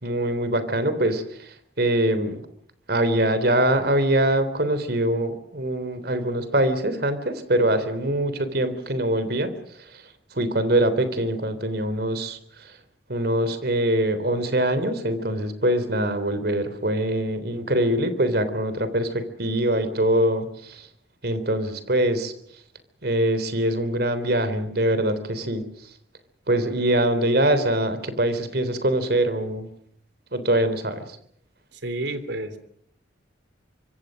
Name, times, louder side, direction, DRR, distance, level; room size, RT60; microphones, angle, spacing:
voice 1, 0.0-2.4 2.9-12.8 13.1-20.9 21.2-22.3 23.0-25.9 26.5-29.7 30.3-31.2, right 1 dB, 55° right, 11 dB, 3.5 m, -23 dB
voice 2, 31.7-32.6, right 1 dB, 75° right, 11 dB, 3.1 m, -30 dB
25.5 x 24.5 x 6.4 m, 0.68 s
head